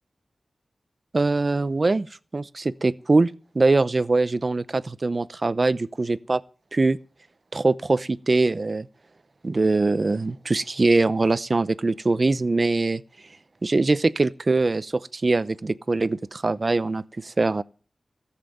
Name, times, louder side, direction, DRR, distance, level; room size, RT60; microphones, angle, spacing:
voice 1, 1.1-2.1 2.3-6.4 6.7-7.0 7.5-8.9 9.4-13.0 13.6-17.6, right 3 dB, 45° right, 0.7 m, -22 dB
14.5 x 7.5 x 9.1 m
wide cardioid pair, 65°, 0 cm